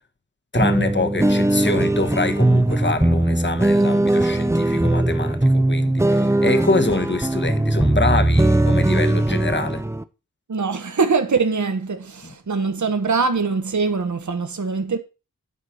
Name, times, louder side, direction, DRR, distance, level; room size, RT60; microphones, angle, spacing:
voice 1, 0.5-9.8 12.2-12.3, left 3 dB, 35° left, 1.4 m, -25 dB
sound 1, 0.6-10.0, right 1 dB, 10° right, 0.7 m, -19 dB
voice 2, 10.5-15.0, right 4 dB, 60° right, 1.2 m, -23 dB
9.8 x 4.7 x 5.7 m
wide cardioid pair, 60°, 33 cm